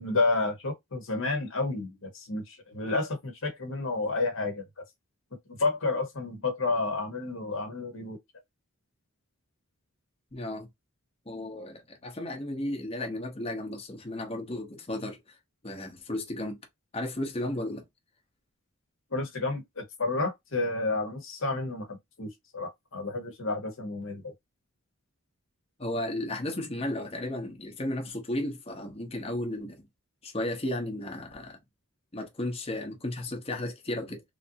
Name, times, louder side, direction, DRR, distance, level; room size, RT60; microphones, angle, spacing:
voice 1, 0.0-4.6 5.5-8.2 19.1-24.3, left 3 dB, 60° left, 1.0 m, -30 dB
voice 2, 10.3-10.7 11.3-15.4 15.6-16.6 16.9-17.8 25.8-29.9 30.2-31.6 32.1-34.2, left 1 dB, 25° left, 0.8 m, -34 dB
3.3 x 2.6 x 2.7 m
head